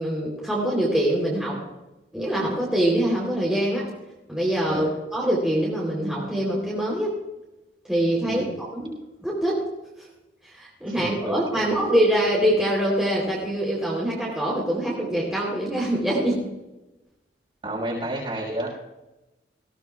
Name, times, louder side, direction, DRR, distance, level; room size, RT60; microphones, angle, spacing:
voice 1, 0.0-1.6 2.1-3.9 4.3-7.1 7.9-9.6 10.0-10.1 10.4-16.5, right 1 dB, 5° right, -5 dB, 3.5 m, -24 dB
voice 2, 10.9-11.7 17.6-18.7, right 1 dB, 30° right, -3 dB, 5.7 m, -31 dB
19.5 x 17.5 x 2.4 m, 1.0 s
head